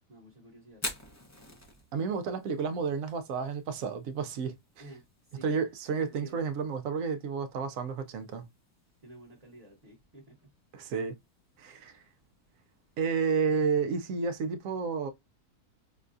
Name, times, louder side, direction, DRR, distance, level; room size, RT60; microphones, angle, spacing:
voice 1, 0.1-0.8 4.8-5.5 6.1-6.5 9.0-10.5, right 1 dB, 30° right, 1.1 m, -52 dB
Fire, 0.7-14.6, left 1 dB, 20° left, 0.4 m, -49 dB
voice 2, 1.9-4.5 5.4-8.4 10.7-11.1 11.6-12.0 13.0-15.1, right 5 dB, 70° right, 0.9 m, -31 dB
5.4 x 2.3 x 2.5 m
omnidirectional pair, 1.7 m